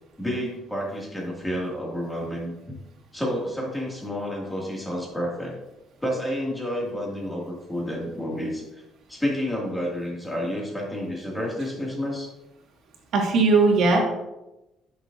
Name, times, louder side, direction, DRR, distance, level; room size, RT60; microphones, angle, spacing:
voice 1, 0.2-2.5 3.1-5.5 6.0-8.6 9.1-12.3, equal, 5° left, -3 dB, 2.1 m, -30 dB
voice 2, 13.1-14.0, right 3 dB, 65° right, 0 dB, 1.8 m, -18 dB
10.0 x 6.2 x 2.6 m, 0.95 s
cardioid pair, 145°, 0 cm